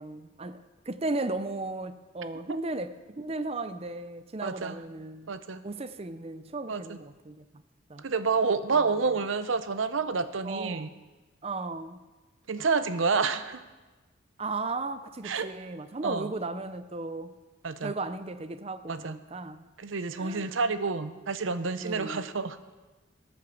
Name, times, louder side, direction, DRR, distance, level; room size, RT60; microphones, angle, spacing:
voice 1, 0.0-5.3 5.6-7.4 7.9-8.0 8.7-8.9 10.4-11.0 11.4-12.0 14.4-17.3 17.8-19.7 20.2-20.5 21.8-22.3, right 2 dB, 30° right, 0.6 m, -36 dB
voice 2, 4.4-4.8 5.3-5.6 6.7-7.0 8.0-10.9 12.5-13.6 15.2-15.5 16.0-16.3 17.6-17.9 18.9-19.2 19.8-22.6, right 4 dB, 85° right, 0.7 m, -29 dB
13.5 x 7.8 x 7.1 m
head